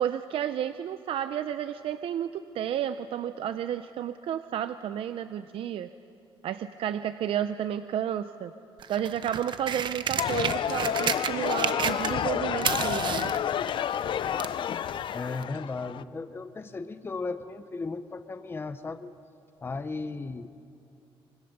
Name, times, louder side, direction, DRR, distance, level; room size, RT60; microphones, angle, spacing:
voice 1, 0.0-5.9 6.4-8.5 8.9-13.3, right 10 dB, 70° right, 11 dB, 0.6 m, -31 dB
sound 1, 8.8-12.3 12.6-14.6 15.4-15.5, right 7 dB, 55° right, 1.0 m, -31 dB
sound 2, 10.2-16.0, left 9 dB, 60° left, 0.5 m, -30 dB
voice 2, 15.1-19.1 19.6-20.5, left 3 dB, 25° left, 10 dB, 0.8 m, -36 dB
25.0 x 24.5 x 6.8 m, 2.6 s
cardioid pair, 120°, 10 cm